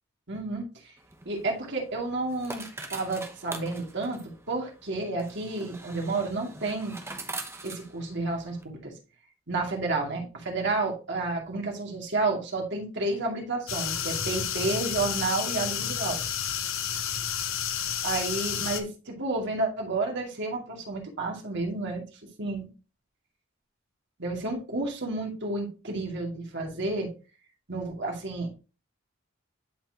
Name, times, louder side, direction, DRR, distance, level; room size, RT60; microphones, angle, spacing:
voice 1, 0.3-0.9 1.3-4.2 4.5-7.0 7.6-8.9 9.5-16.2 18.0-22.0 22.4-22.7 24.2-27.1 27.7-28.5, right 2 dB, 60° right, 0 dB, 2.5 m, -31 dB
sound 1, 1.0-8.6, right 3 dB, 15° right, 0.9 m, -43 dB
sound 2, 13.7-18.8, left 8 dB, 80° left, 1.0 m, -31 dB
11.0 x 4.4 x 2.9 m, 0.33 s
head